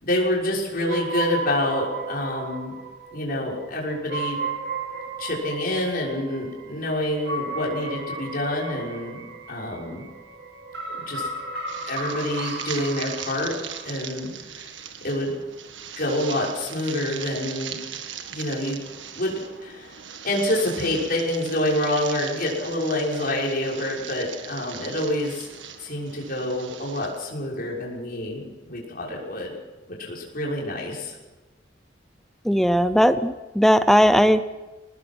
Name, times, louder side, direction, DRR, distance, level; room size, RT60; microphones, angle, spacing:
voice 1, 0.0-2.8 3.1-4.4 5.2-9.2 9.5-10.0 10.9-11.3 11.9-13.5 13.8-14.7 15.0-15.3 16.0-17.8 18.3-18.8 19.1-19.9 20.2-25.5 25.8-29.5 29.9-31.2, left 1 dB, 55° left, -3 dB, 6.3 m, -27 dB
sound 1, 0.9-13.9, right 3 dB, 65° right, 2.5 m, -34 dB
sound 2, 11.7-27.3, right 8 dB, 80° right, 1.7 m, -39 dB
voice 2, 32.4-34.4, equal, ahead, 11 dB, 0.6 m, -18 dB
22.0 x 19.5 x 6.3 m, 1.1 s
head